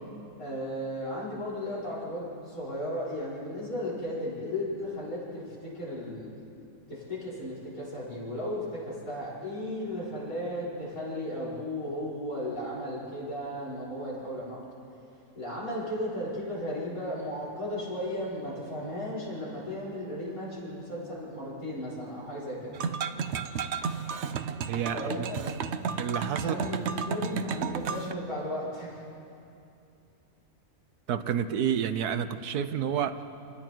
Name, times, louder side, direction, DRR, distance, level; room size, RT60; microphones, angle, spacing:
voice 1, 0.4-6.3 6.9-14.6 15.4-22.7 24.9-25.6 26.4-29.0, left 1 dB, 65° left, -7 dB, 6.0 m, -35 dB
sound 1, 22.7-28.1, right 6 dB, 55° right, 0.9 m, -32 dB
voice 2, 24.7-25.3 26.0-26.5 31.1-33.1, right 8 dB, 85° right, 10 dB, 1.4 m, -29 dB
29.0 x 19.5 x 4.6 m, 2.7 s
omnidirectional pair, 1.6 m